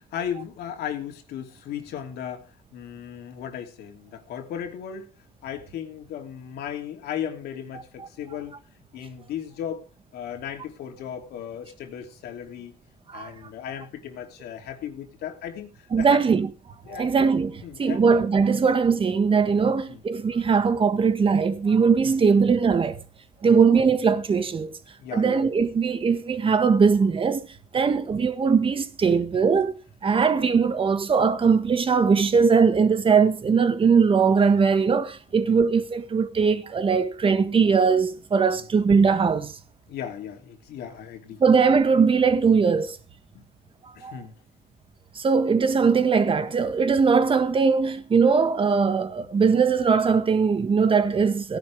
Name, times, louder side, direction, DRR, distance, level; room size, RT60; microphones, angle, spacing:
voice 1, 0.0-5.1 5.4-8.5 8.9-9.9 10.1-12.7 13.1-16.2 16.8-17.1 17.6-18.1 18.5-18.6 19.6-20.0 22.0-22.4 23.4-23.6 25.0-25.4 27.7-27.9 30.1-30.2 35.4-35.6 38.6-38.7 39.9-41.4 43.3-43.4 44.0-44.4, left 9 dB, 75° left, 2.8 m, -36 dB
voice 2, 15.9-16.5 16.9-23.0 23.4-24.8 25.1-27.4 27.7-29.7 30.0-39.5 41.4-43.0 44.0-44.2 45.1-51.6, right 5 dB, 30° right, 1.6 m, -20 dB
17.0 x 11.0 x 3.5 m
cardioid pair, 110°, 17 cm